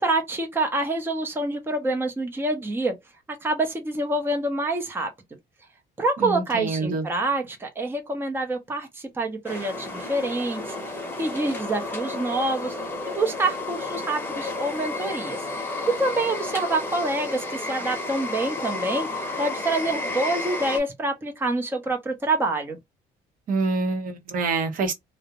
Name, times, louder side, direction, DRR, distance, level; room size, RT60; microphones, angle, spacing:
voice 1, 0.0-2.9 3.4-5.1 6.0-8.9 9.2-10.7 11.2-12.7 13.2-15.4 15.9-19.1 19.4-22.8, right 2 dB, 15° right, 0.6 m, -26 dB
voice 2, 6.2-7.1 23.5-24.9, right 3 dB, 55° right, 0.7 m, -26 dB
sound 1, 9.4-20.8, left 2 dB, 10° left, 0.9 m, -32 dB
2.3 x 2.0 x 2.8 m
cardioid pair, 110°, 17 cm